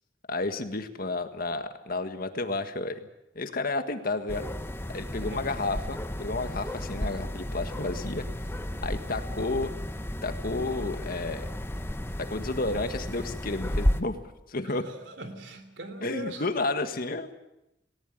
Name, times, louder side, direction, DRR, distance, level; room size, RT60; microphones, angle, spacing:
voice 1, 0.3-3.1 3.3-4.5 4.9-8.2 8.8-9.7 10.2-11.5 12.3-14.2 14.5-14.8 16.0-17.3, left 2 dB, 55° left, 8 dB, 1.7 m, -31 dB
sound 1, 4.3-14.0, equal, 15° left, 1.0 m, -33 dB
voice 2, 14.7-16.4, right 1 dB, 80° right, 8 dB, 3.3 m, -41 dB
19.0 x 19.0 x 9.0 m, 0.88 s
head